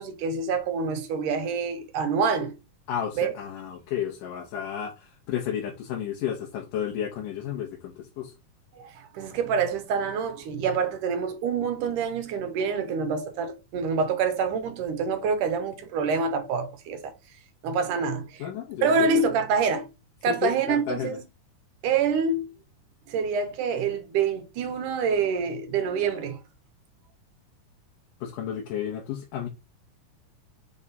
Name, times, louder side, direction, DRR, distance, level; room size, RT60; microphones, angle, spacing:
voice 1, 0.0-2.5 3.2-3.3 8.8-17.1 17.6-18.5 18.8-19.9 20.2-21.2 21.8-22.5 23.1-26.4, right 5 dB, 80° right, 2.6 m, -26 dB
voice 2, 2.9-4.9 5.3-8.3 18.4-19.1 20.3-21.2 28.2-29.5, left 9 dB, 80° left, 2.7 m, -32 dB
6.4 x 3.6 x 4.1 m
omnidirectional pair, 3.7 m